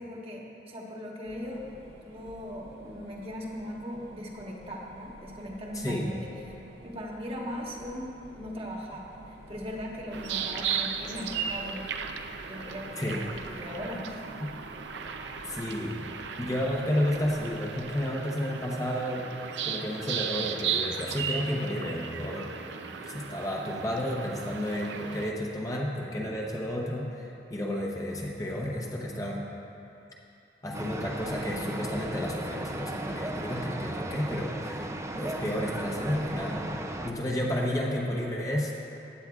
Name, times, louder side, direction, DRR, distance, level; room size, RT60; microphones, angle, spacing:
voice 1, 0.0-1.6 2.0-6.2 6.5-6.6 6.8-13.2 13.5-14.2, equal, 35° right, -2 dB, 1.2 m, -39 dB
sound 1, 1.2-18.1, right 1 dB, 65° right, 0.9 m, -51 dB
voice 2, 5.7-6.1 13.0-13.3 15.5-16.1 16.4-19.3 19.6-22.5 23.0-29.4 30.6-34.9 35.2-36.8 37.0-38.7, left 1 dB, 20° left, -2 dB, 0.8 m, -31 dB
sound 2, 10.1-25.3, right 7 dB, 85° right, 0.5 m, -36 dB
sound 3, 30.7-37.1, right 1 dB, 15° right, 0.4 m, -36 dB
15.5 x 9.4 x 2.4 m, 2.8 s
head